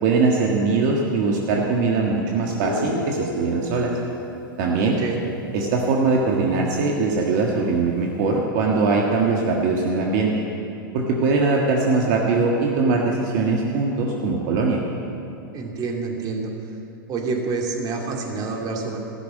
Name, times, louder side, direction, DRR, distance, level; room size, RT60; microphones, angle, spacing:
voice 1, 0.0-3.9 4.6-5.0 5.5-10.4 10.9-14.8, right 4 dB, 55° right, -1 dB, 1.6 m, -21 dB
Guitar, 2.6-6.2, left 1 dB, 65° left, 2.9 m, -34 dB
voice 2, 4.8-5.3 15.5-16.8 17.1-19.0, right 4 dB, 35° right, 1 dB, 2.4 m, -28 dB
15.5 x 6.9 x 9.4 m, 2.8 s
hypercardioid pair, 105°, 12 cm